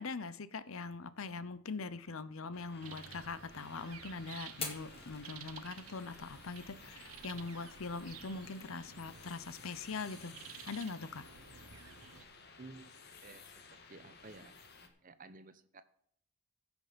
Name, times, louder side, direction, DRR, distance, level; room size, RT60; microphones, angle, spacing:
voice 1, 0.0-10.4 10.7-11.2, left 4 dB, 70° left, 0.7 m, -42 dB
sound 1, 2.5-14.9, left 5 dB, 50° left, 1.5 m, -56 dB
sound 2, 2.8-12.2, right 7 dB, 80° right, 0.9 m, -53 dB
Fire, 4.5-12.4, left 4 dB, 25° left, 2.1 m, -52 dB
voice 2, 12.6-12.9 13.2-15.8, right 3 dB, 40° right, 0.8 m, -54 dB
15.5 x 6.3 x 5.1 m
head